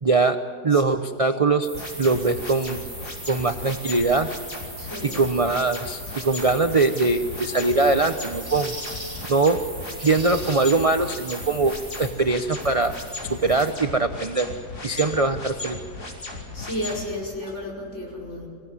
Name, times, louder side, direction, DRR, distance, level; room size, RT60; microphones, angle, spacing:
voice 1, 0.0-1.7 2.0-2.8 3.3-4.3 5.0-8.8 9.3-9.6 10.0-12.9 13.3-14.5 14.8-15.8, right 3 dB, 35° right, 8 dB, 0.6 m, -22 dB
sound 1, 1.6-13.7, right 1 dB, 15° right, 4.2 m, -40 dB
sound 2, 1.7-17.0, left 3 dB, 80° left, 4.6 m, -36 dB
voice 2, 4.8-5.2 14.9-15.0 16.5-18.5, left 1 dB, 45° left, -2 dB, 5.5 m, -32 dB
25.5 x 17.5 x 9.6 m, 2.4 s
omnidirectional pair, 1.7 m